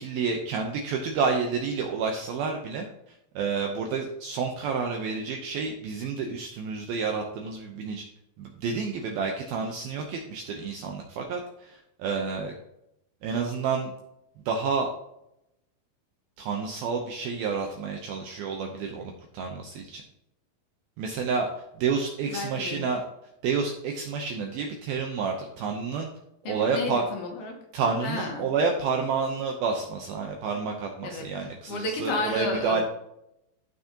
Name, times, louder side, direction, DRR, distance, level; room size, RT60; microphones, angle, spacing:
voice 1, 0.0-8.0 8.4-12.5 13.2-13.9 14.5-14.9 16.4-20.0 21.0-23.0 23.4-26.1 26.4-27.1 27.7-32.8, right 5 dB, 80° right, 2 dB, 2.2 m, -29 dB
voice 2, 22.3-22.8 26.4-27.5 28.0-28.5 31.0-32.8, left 2 dB, 65° left, 1 dB, 3.0 m, -32 dB
15.0 x 6.1 x 2.9 m, 0.82 s
omnidirectional pair, 5.3 m